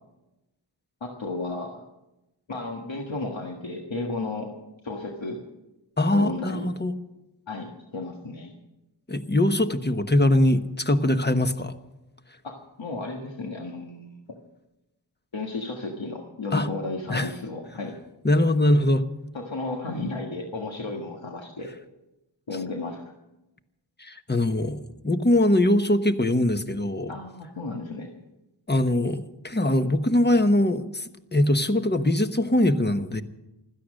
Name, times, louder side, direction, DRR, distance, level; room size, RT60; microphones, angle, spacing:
voice 1, 1.0-1.8 2.5-4.5 4.8-5.4 6.1-6.7 7.5-8.5 12.4-14.2 15.3-17.9 19.3-21.7 22.5-23.0 27.1-28.1, left 2 dB, 80° left, 0 dB, 1.7 m, -33 dB
voice 2, 6.0-6.9 9.1-11.8 16.5-16.7 17.1-17.3 18.2-19.0 24.0-24.8 25.0-27.1 28.7-33.2, left 1 dB, 20° left, 9 dB, 1.1 m, -22 dB
16.0 x 13.0 x 6.4 m, 0.97 s
wide cardioid pair, 40°, 45 cm